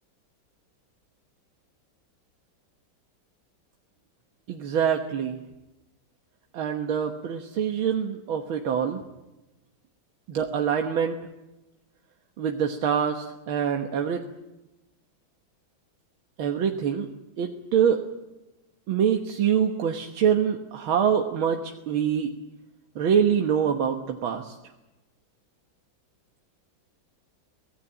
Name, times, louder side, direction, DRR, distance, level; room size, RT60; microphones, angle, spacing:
voice 1, 4.5-5.4 6.5-9.0 10.3-11.2 12.4-14.2 16.4-17.1 17.4-18.0 18.9-22.3 23.0-24.5, right 8 dB, 85° right, 3 dB, 2.1 m, -25 dB
24.0 x 18.0 x 8.9 m, 1.0 s
omnidirectional pair, 2.2 m